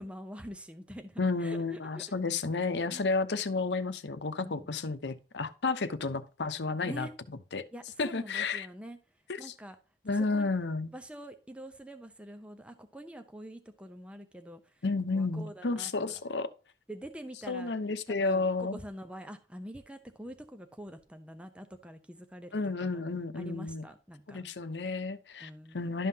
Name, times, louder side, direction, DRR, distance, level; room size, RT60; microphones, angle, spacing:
voice 1, 0.0-2.0 2.8-3.1 4.4-4.7 6.8-7.1 7.7-9.0 9.4-9.8 10.1-10.5 10.9-14.8 15.1-16.2 16.9-17.8 18.2-23.0 23.3-24.4 25.4-25.9, equal, 5° right, 0.6 m, -45 dB
voice 2, 1.2-7.1 7.5-7.7 8.0-8.7 9.3-9.4 10.1-10.9 14.8-16.5 17.5-18.8 22.5-23.8 24.3-26.1, left 3 dB, 80° left, 0.8 m, -31 dB
12.0 x 5.6 x 2.8 m
head